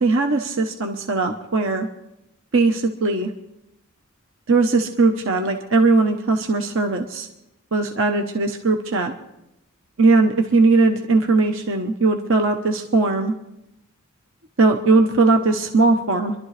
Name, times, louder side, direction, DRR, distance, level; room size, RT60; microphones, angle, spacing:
voice 1, 0.0-1.9 2.5-3.3 4.5-7.3 7.7-9.1 10.0-13.3 14.6-16.3, right 3 dB, 65° right, 4 dB, 1.0 m, -19 dB
25.5 x 12.0 x 3.3 m, 0.86 s
head